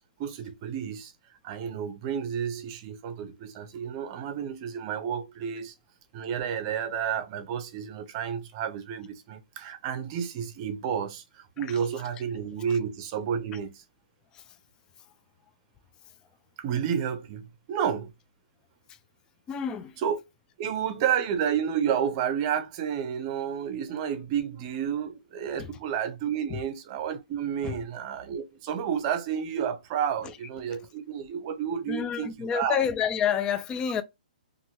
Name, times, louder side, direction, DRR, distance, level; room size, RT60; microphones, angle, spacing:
voice 1, 0.2-1.1 1.4-5.7 6.1-13.8 16.6-18.1 20.0-20.2 20.6-32.8, right 8 dB, 35° right, 0.7 m, -31 dB
voice 2, 19.5-20.0 25.6-25.7 26.5-26.6 27.6-27.9 30.7-30.8 31.9-34.0, left 8 dB, 15° left, 0.3 m, -29 dB
2.8 x 2.6 x 2.8 m
hypercardioid pair, 150°, 5 cm